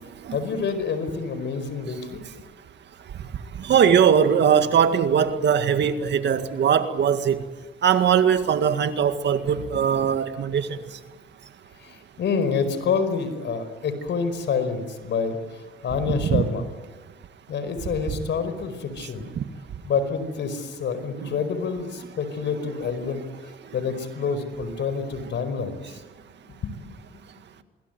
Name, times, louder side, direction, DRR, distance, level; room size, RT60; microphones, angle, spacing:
voice 1, 0.3-2.2 4.5-4.6 9.5-9.8 11.8-15.4 15.8-16.7 17.5-19.3 19.8-23.2 23.7-25.8 26.6-26.7, left 5 dB, 65° left, 11 dB, 4.9 m, -27 dB
voice 2, 3.6-7.4 7.8-10.8 16.1-16.4 19.4-19.5 21.2-21.3, right 8 dB, 60° right, 9 dB, 2.0 m, -20 dB
27.0 x 22.0 x 9.3 m, 1.3 s
cardioid pair, 90°, 20 cm